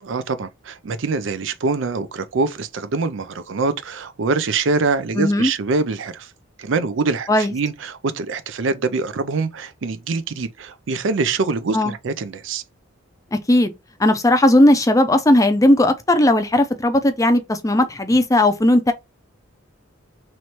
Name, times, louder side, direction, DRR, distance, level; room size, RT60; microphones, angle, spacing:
voice 1, 0.0-6.3 6.6-12.6, right 4 dB, 65° right, 0.5 m, -24 dB
voice 2, 5.1-5.5 7.3-7.5 11.7-11.9 13.3-13.7 14.0-18.9, left 1 dB, 15° left, 0.5 m, -16 dB
3.1 x 3.1 x 4.2 m
head